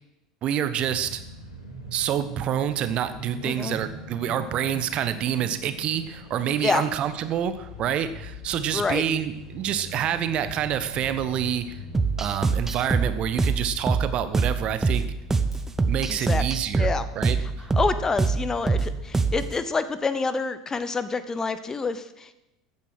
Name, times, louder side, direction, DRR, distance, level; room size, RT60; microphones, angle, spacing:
voice 1, 0.4-1.2 1.9-11.8 12.2-15.0 15.9-16.9 17.1-17.7, right 10 dB, 40° right, 12 dB, 1.0 m, -27 dB
sound 1, 0.7-19.4, left 1 dB, 85° left, 4.6 m, -42 dB
voice 2, 3.4-3.8 6.6-6.9 8.7-9.0 16.1-16.4 16.8-17.0 17.4-17.5 17.8-22.4, left 4 dB, 20° left, 13 dB, 0.8 m, -27 dB
sound 2, 11.9-19.6, right 4 dB, 15° right, 1.0 m, -25 dB
14.5 x 8.8 x 6.3 m, 0.91 s
figure-of-eight pair, 75°, 3 cm